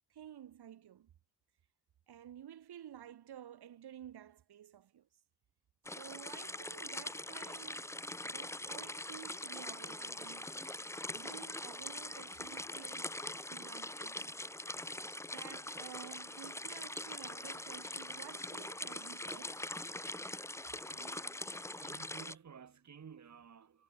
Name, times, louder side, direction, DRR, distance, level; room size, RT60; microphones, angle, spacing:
voice 1, 0.1-1.1 2.1-5.1 6.0-8.0 8.2-10.7 11.1-13.2 13.5-14.4 15.3-19.7, right 10 dB, 85° right, 7.0 m, -52 dB
sound 1, 5.8-22.3, left 1 dB, 5° left, 1.6 m, -43 dB
voice 2, 20.9-21.5 21.8-23.8, right 7 dB, 45° right, 7.4 m, -54 dB
wide cardioid pair, 170°, 38 cm